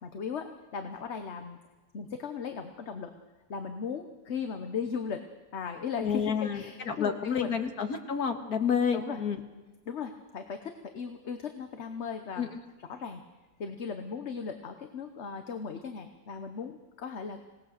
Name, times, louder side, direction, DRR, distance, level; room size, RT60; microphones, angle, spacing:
voice 1, 0.0-1.6 1.9-3.1 3.5-5.2 5.5-7.6 8.9-9.2 9.9-12.5 12.9-13.2 13.6-17.4, left 6 dB, 50° left, 7 dB, 1.2 m, -37 dB
voice 2, 6.0-9.4 12.4-12.5, left 6 dB, 70° left, 5 dB, 2.2 m, -29 dB
26.0 x 18.5 x 6.6 m, 1.2 s
omnidirectional pair, 1.7 m